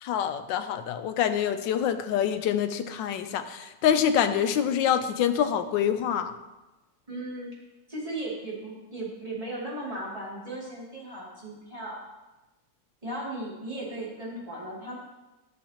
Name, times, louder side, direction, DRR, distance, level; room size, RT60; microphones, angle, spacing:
voice 1, 0.0-6.3, left 9 dB, 85° left, 9 dB, 1.3 m, -26 dB
voice 2, 7.1-7.5 7.9-12.0 13.0-15.0, right 1 dB, 20° right, -7 dB, 2.6 m, -36 dB
11.5 x 6.5 x 2.9 m, 1.1 s
omnidirectional pair, 2.0 m